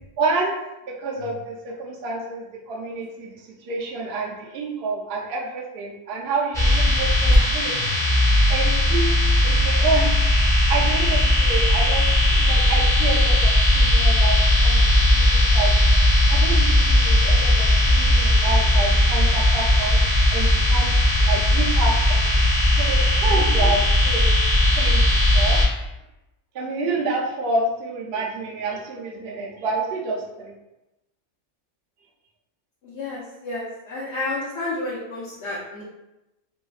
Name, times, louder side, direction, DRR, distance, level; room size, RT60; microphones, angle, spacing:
voice 1, 0.2-0.6 1.0-8.0 8.5-9.2 9.4-15.7 16.3-20.0 20.3-20.9 21.2-22.3 22.8-24.3 24.8-25.0 25.3-25.6 26.5-30.5, right 3 dB, 65° right, -2 dB, 0.7 m, -28 dB
sound 1, 6.5-25.7, left 1 dB, 5° left, 0.5 m, -18 dB
voice 2, 32.8-35.8, left 2 dB, 65° left, -6 dB, 0.9 m, -31 dB
3.2 x 2.1 x 2.3 m, 0.94 s
omnidirectional pair, 1.3 m